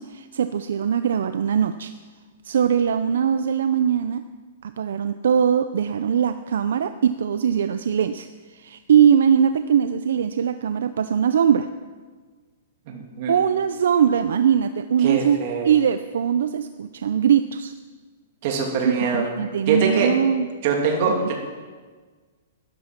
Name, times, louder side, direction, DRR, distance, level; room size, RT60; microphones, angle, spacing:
voice 1, 0.0-1.9 2.4-4.2 4.6-11.7 13.3-15.4 15.6-17.7 18.8-20.5 21.1-21.3, right 8 dB, 75° right, 11 dB, 0.5 m, -21 dB
voice 2, 12.9-13.3 15.0-15.7 18.4-19.2 19.7-20.1 20.6-21.4, right 5 dB, 40° right, 1 dB, 2.6 m, -23 dB
12.5 x 11.5 x 5.9 m, 1.4 s
hypercardioid pair, 170°, 0 cm